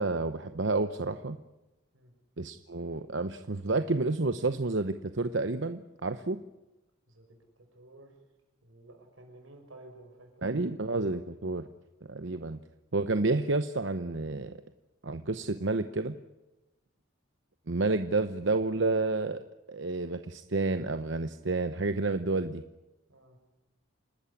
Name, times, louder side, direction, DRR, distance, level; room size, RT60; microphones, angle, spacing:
voice 1, 0.0-1.4 2.4-6.4 10.4-11.7 12.1-12.6 12.9-14.6 15.0-16.2 17.7-19.4 19.7-22.6, right 3 dB, 65° right, 10 dB, 0.9 m, -30 dB
voice 2, 7.7-8.1 8.6-10.3 23.1-23.4, right 2 dB, 90° right, 4 dB, 6.2 m, -52 dB
28.5 x 13.0 x 9.9 m, 1.0 s
head